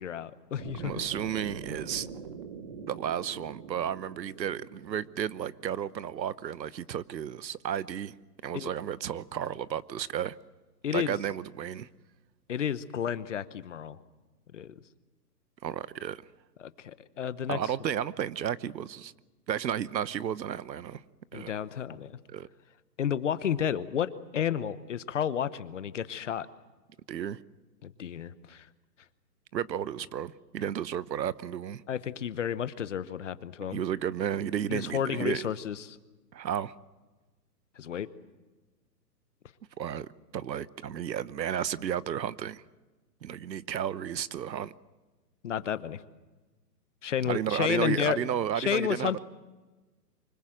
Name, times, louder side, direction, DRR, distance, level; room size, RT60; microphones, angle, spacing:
voice 1, 0.0-1.0 8.5-8.7 10.8-11.1 12.5-14.0 14.5-14.7 16.6-17.6 21.3-22.2 23.0-26.5 27.8-28.7 31.9-33.8 34.7-36.0 37.8-38.1 45.4-46.0 47.0-48.2 48.6-49.2, left 9 dB, 45° left, 1.0 m, -31 dB
sound 1, 0.6-6.7, right 5 dB, 25° right, 1.0 m, -44 dB
voice 2, 0.8-2.1 2.9-8.2 8.4-10.4 10.9-11.9 15.6-16.2 17.5-19.1 19.5-21.0 21.3-21.5 22.3-22.5 27.1-27.4 29.5-31.8 33.7-35.4 36.3-36.7 39.8-40.1 40.3-42.6 43.2-44.7 47.2-49.2, right 9 dB, 85° right, 1.1 m, -33 dB
25.0 x 20.0 x 7.7 m
hypercardioid pair, 170°, 50 cm